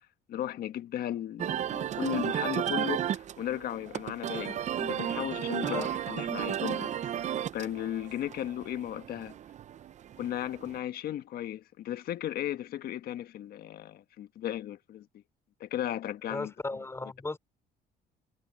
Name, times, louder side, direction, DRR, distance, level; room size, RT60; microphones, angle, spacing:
voice 1, 0.3-6.9 7.5-9.3 10.2-15.1 15.6-16.5, left 12 dB, 65° left, 1.4 m, -35 dB
sound 1, 1.4-10.8, right 10 dB, 45° right, 0.6 m, -34 dB
voice 2, 5.6-5.9 16.3-17.4, left 2 dB, 15° left, 4.6 m, -36 dB
cardioid pair, 110°, 17 cm